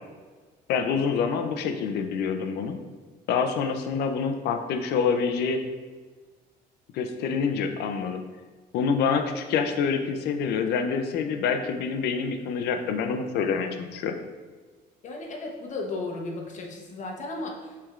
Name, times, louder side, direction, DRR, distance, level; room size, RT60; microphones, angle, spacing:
voice 1, 0.7-2.8 3.3-5.6 6.9-8.2 8.7-14.2, left 6 dB, 75° left, 6 dB, 0.5 m, -26 dB
voice 2, 15.0-17.8, left 2 dB, 45° left, 2 dB, 0.8 m, -35 dB
6.1 x 3.4 x 2.4 m, 1.4 s
cardioid pair, 110°, 17 cm